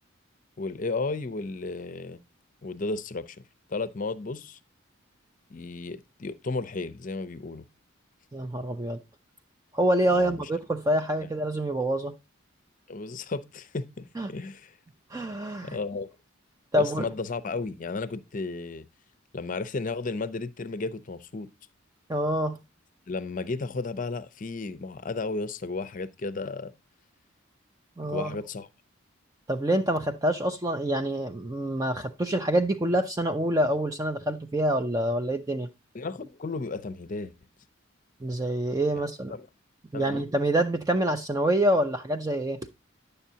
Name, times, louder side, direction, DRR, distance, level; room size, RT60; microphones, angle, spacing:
voice 1, 0.6-2.2 2.6-3.4 3.7-4.6 5.5-7.6 10.0-10.5 11.2-11.3 12.9-14.8 15.6-16.1 16.7-18.9 19.3-21.5 23.1-26.7 28.0-28.7 35.9-37.3 38.9-39.0 39.3-39.5 39.9-40.3, left 3 dB, 40° left, 0.5 m, -34 dB
voice 2, 8.3-9.0 9.7-12.1 14.2-14.3 15.1-15.8 16.7-17.0 22.1-22.6 28.0-28.3 29.5-35.7 38.2-39.4 39.9-42.6, right 1 dB, 15° right, 0.4 m, -26 dB
10.0 x 6.8 x 2.8 m
head